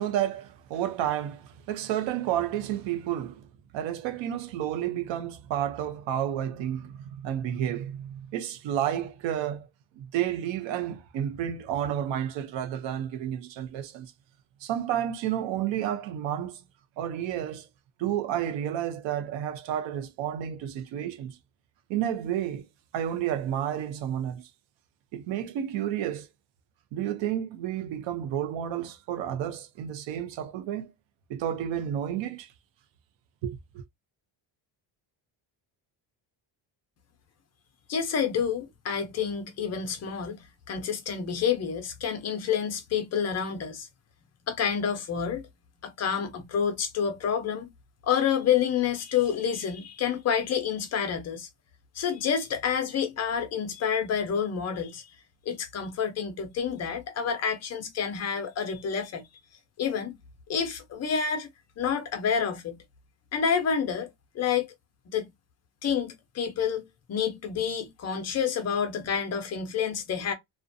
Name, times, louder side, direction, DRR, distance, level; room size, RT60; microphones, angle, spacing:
voice 1, 0.0-3.4 3.7-9.7 10.0-14.1 14.6-16.6 17.0-17.7 18.0-21.4 21.9-22.7 22.9-24.5 25.1-26.3 26.9-30.9 31.3-32.5 33.4-33.8, right 10 dB, 65° right, 0.6 m, -31 dB
voice 2, 37.9-40.4 40.7-43.9 44.5-45.5 45.8-47.7 48.0-51.5 52.0-55.0 55.5-59.2 59.8-60.1 60.5-61.5 61.8-62.8 63.3-64.1 64.3-64.7 65.1-65.3 65.8-70.3, left 7 dB, 35° left, 0.5 m, -28 dB
2.5 x 2.1 x 2.5 m
cardioid pair, 165°, 48 cm